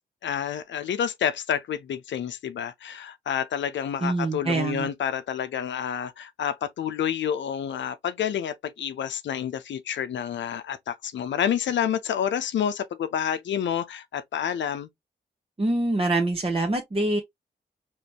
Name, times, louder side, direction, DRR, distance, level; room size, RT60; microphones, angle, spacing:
voice 1, 0.2-14.9, left 9 dB, 75° left, 0.6 m, -29 dB
voice 2, 4.0-4.9 15.6-17.2, right 2 dB, 30° right, 1.1 m, -25 dB
5.0 x 3.1 x 2.9 m
supercardioid pair, 45°, 19 cm